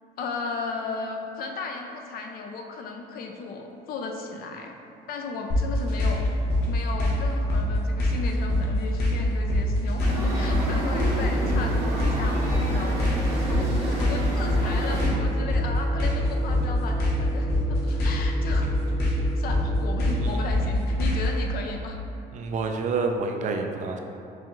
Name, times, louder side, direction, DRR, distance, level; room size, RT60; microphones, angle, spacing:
voice 1, 0.2-4.7 5.1-6.3 6.7-18.7 19.4-22.0, left 4 dB, 60° left, 3 dB, 0.4 m, -35 dB
sound 1, 5.5-21.4, left 1 dB, 80° left, 0.8 m, -24 dB
sound 2, 10.0-15.1, right 1 dB, 80° right, 1.1 m, -31 dB
sound 3, 11.0-20.3, right 1 dB, 10° left, 0.6 m, -37 dB
voice 2, 22.3-24.0, right 4 dB, 45° right, 4 dB, 0.4 m, -28 dB
4.7 x 2.4 x 3.0 m, 2.7 s
cardioid pair, 110°, 17 cm